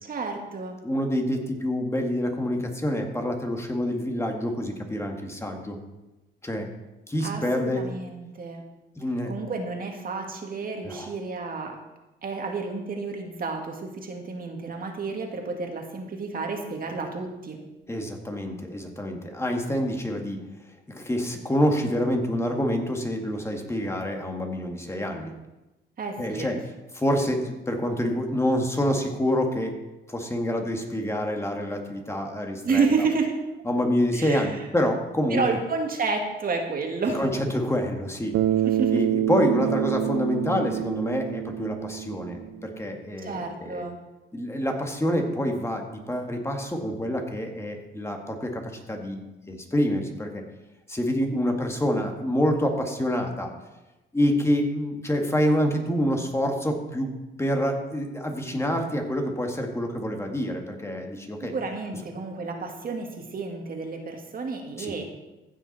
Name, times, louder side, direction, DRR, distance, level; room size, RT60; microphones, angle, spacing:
voice 1, 0.0-0.8 7.2-8.6 9.3-11.8 12.2-17.6 26.0-26.5 32.6-33.4 34.1-34.5 35.3-37.2 38.6-39.0 43.2-44.0 61.4-65.0, right 4 dB, 45° right, 3 dB, 2.0 m, -30 dB
voice 2, 0.8-5.8 6.4-6.7 7.1-7.8 9.0-9.3 10.8-11.1 17.9-20.4 20.9-25.3 26.2-26.5 26.9-29.8 30.1-32.9 33.6-35.4 37.1-38.3 38.9-43.8 44.3-50.4 50.9-53.5 54.1-61.5 64.8-64.9, equal, 15° left, 3 dB, 1.7 m, -27 dB
Bass guitar, 38.3-42.7, right 12 dB, 90° right, 0.6 m, -27 dB
15.5 x 6.0 x 4.2 m, 1.0 s
cardioid pair, 90°, 20 cm